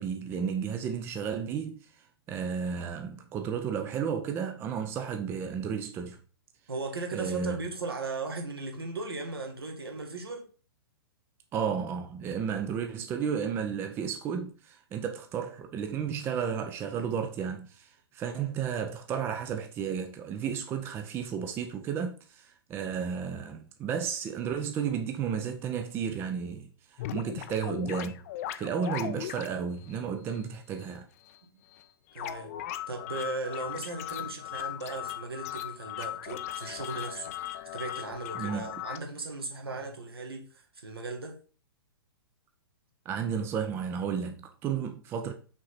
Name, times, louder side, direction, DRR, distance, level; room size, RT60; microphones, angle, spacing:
voice 1, 0.0-1.8 2.3-6.2 7.1-7.6 11.5-28.2 28.6-31.1 38.4-38.7 43.1-45.3, right 7 dB, 15° right, 0.5 m, -33 dB
voice 2, 6.7-10.5 32.1-32.5 32.9-41.4, right 3 dB, 70° right, 1.6 m, -37 dB
sound 1, 27.0-29.5 29.8-29.9 30.3-30.4 30.8-30.9 31.3-31.4 31.7-31.8 32.1-39.0, left 12 dB, 35° left, 0.5 m, -38 dB
5.9 x 3.8 x 4.2 m
figure-of-eight pair, 115°, 13 cm